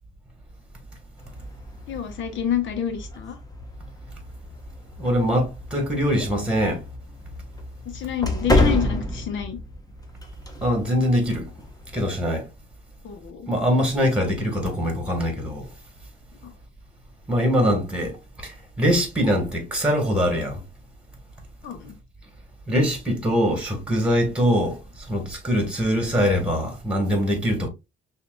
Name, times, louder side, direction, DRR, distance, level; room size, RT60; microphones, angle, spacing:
sound 1, 1.2-12.1, left 1 dB, 20° left, 1.1 m, -30 dB
voice 1, 1.9-3.4 7.8-9.6 13.0-13.5 16.4-16.5 21.6-22.0, left 9 dB, 75° left, 1.1 m, -28 dB
voice 2, 5.0-6.8 10.6-11.5 11.9-12.5 13.5-15.7 17.3-20.6 22.7-27.7, equal, 5° right, 1.6 m, -23 dB
5.8 x 2.8 x 2.3 m
cardioid pair, 90°, 20 cm